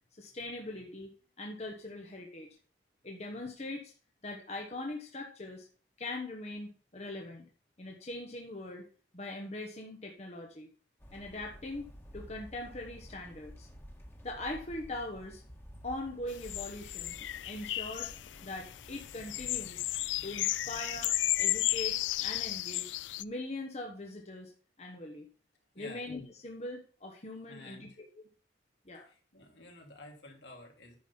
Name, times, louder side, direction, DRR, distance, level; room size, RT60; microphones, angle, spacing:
voice 1, 0.2-1.1 1.4-2.5 3.0-3.9 4.2-5.7 6.0-7.5 7.8-8.8 9.1-10.7 11.1-11.9 12.1-13.7 14.2-15.4 15.8-17.2 17.4-18.1 18.4-19.9 20.2-21.1 21.4-22.9 23.2-24.5 24.8-25.2 25.7-27.9 28.8-29.1, left 2 dB, 35° left, 1 dB, 1.3 m, -41 dB
sound 1, 11.0-22.6, equal, 15° left, 1.7 m, -52 dB
sound 2, 16.3-23.2, left 16 dB, 90° left, 0.4 m, -34 dB
voice 2, 25.7-26.1 27.5-28.0 28.9-31.0, left 2 dB, 70° left, 1 dB, 3.1 m, -51 dB
10.0 x 6.3 x 5.6 m, 0.41 s
head